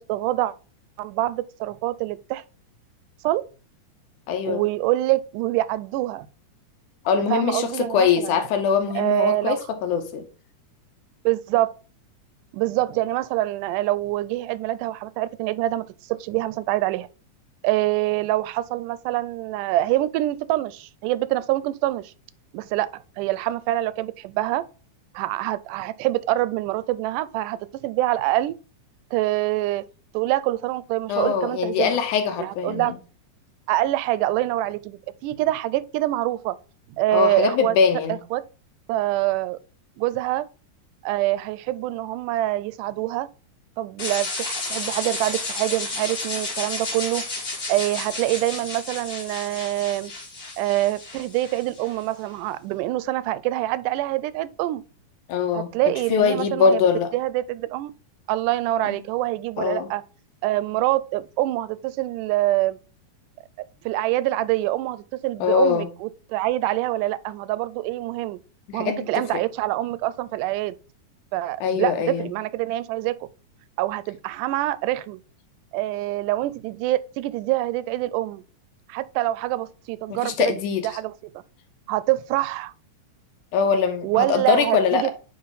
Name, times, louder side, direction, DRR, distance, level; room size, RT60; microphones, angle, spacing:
voice 1, 0.1-0.5 1.0-2.4 3.2-3.4 4.5-6.3 7.3-8.4 9.0-9.6 11.3-11.7 12.5-17.1 17.6-22.1 22.5-24.6 25.1-28.6 29.1-29.8 30.1-32.0 32.4-32.9 33.7-36.6 37.0-37.8 38.1-38.4 38.9-39.6 40.0-40.5 41.0-43.3 43.8-47.2 47.7-50.1 50.6-54.8 55.5-56.8 57.1-57.9 58.3-60.0 60.4-62.8 63.9-68.4 68.7-70.8 71.3-71.9 72.2-73.1 73.8-75.2 75.7-78.4 78.9-80.6 80.8-81.1 81.9-82.7 84.0-85.1, right 16 dB, 85° right, 2.0 m, -25 dB
voice 2, 4.3-4.6 7.1-10.3 31.1-33.0 37.1-38.2 55.3-55.7 56.1-57.1 58.8-59.0 59.6-59.9 65.4-65.9 68.7-69.4 71.6-72.3 80.1-80.9 83.5-85.1, left 6 dB, 75° left, 2.4 m, -22 dB
sound 1, 44.0-52.0, left 3 dB, 25° left, 2.5 m, -32 dB
9.6 x 3.5 x 4.0 m
omnidirectional pair, 3.7 m